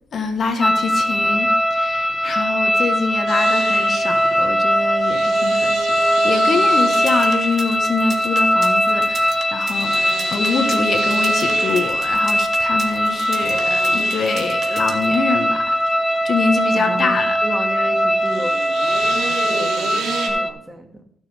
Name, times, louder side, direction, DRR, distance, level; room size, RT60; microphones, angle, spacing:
voice 1, 0.1-15.8 16.2-17.4, left 4 dB, 50° left, 6 dB, 1.4 m, -25 dB
sound 1, 0.6-20.5, equal, 15° left, 0.9 m, -20 dB
sound 2, 3.3-20.3, right 5 dB, 75° right, 2.7 m, -33 dB
sound 3, 6.8-15.1, right 6 dB, 55° right, 1.9 m, -36 dB
voice 2, 16.7-18.7 19.1-21.0, right 1 dB, 10° right, 3 dB, 1.9 m, -32 dB
16.0 x 6.5 x 3.5 m, 0.69 s
cardioid pair, 90°, 0 cm